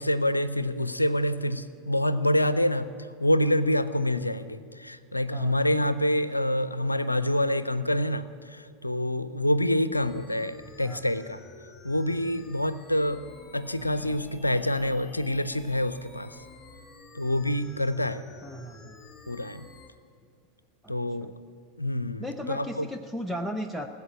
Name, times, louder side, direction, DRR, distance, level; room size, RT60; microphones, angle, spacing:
voice 1, 0.0-2.9 3.2-11.4 11.8-13.3 13.5-16.4 17.1-18.2 19.3-19.7 20.9-21.3 21.8-22.9, left 1 dB, 85° left, 14 dB, 0.5 m, -26 dB
sound 1, 9.9-19.9, left 3 dB, 20° left, 1.2 m, -50 dB
voice 2, 18.4-18.9 20.8-20.9 21.2-21.3 22.2-23.9, equal, ahead, 3 dB, 0.7 m, -36 dB
16.0 x 8.2 x 9.9 m, 2.3 s
figure-of-eight pair, 85°, 0 cm